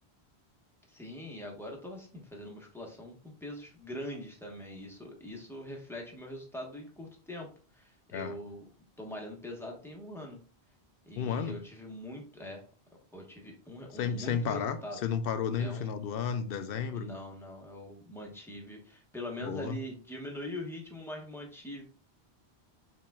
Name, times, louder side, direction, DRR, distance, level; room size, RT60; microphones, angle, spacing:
voice 1, 0.9-7.5 7.7-8.6 9.0-10.4 11.0-12.6 13.1-15.0 15.6-15.9 16.9-21.8, left 1 dB, ahead, 1.1 m, -42 dB
voice 2, 11.2-11.6 13.9-17.1 19.4-19.8, left 7 dB, 65° left, 0.7 m, -32 dB
5.8 x 3.6 x 2.3 m
omnidirectional pair, 1.1 m